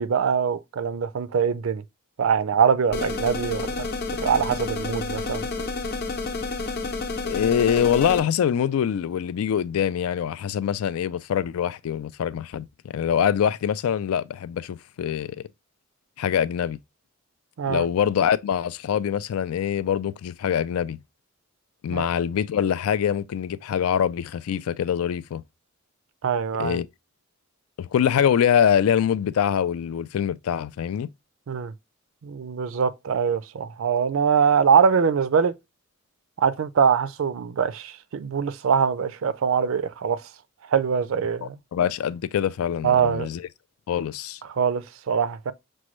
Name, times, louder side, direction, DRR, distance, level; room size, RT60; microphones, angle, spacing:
voice 1, 0.0-1.8 2.2-3.9 4.2-5.5 17.6-17.9 21.9-22.1 26.2-26.8 31.5-31.7 32.2-35.5 36.4-40.2 40.7-41.6 42.8-43.3 44.5-45.5, right 6 dB, 65° right, 0.4 m, -23 dB
sound 1, 2.9-8.2, left 3 dB, 50° left, 0.7 m, -30 dB
voice 2, 7.2-12.7 12.9-15.4 16.2-16.8 17.7-21.0 21.8-25.4 26.6-26.9 27.8-31.1 41.4-43.4 43.9-44.4, left 8 dB, 90° left, 0.3 m, -24 dB
6.1 x 2.2 x 3.0 m
head